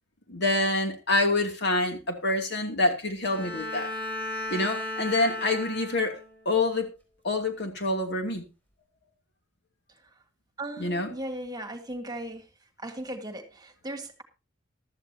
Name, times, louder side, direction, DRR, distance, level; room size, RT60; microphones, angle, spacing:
voice 1, 0.3-3.9 4.5-6.2 6.4-6.9 7.2-8.5 10.8-11.1, left 2 dB, 60° left, 4 dB, 2.8 m, -26 dB
Bowed string instrument, 3.2-6.4, left 1 dB, 10° left, 4.4 m, -35 dB
voice 2, 10.6-12.5 12.8-14.2, right 1 dB, 20° right, 7 dB, 1.8 m, -37 dB
15.5 x 12.5 x 2.8 m, 0.28 s
head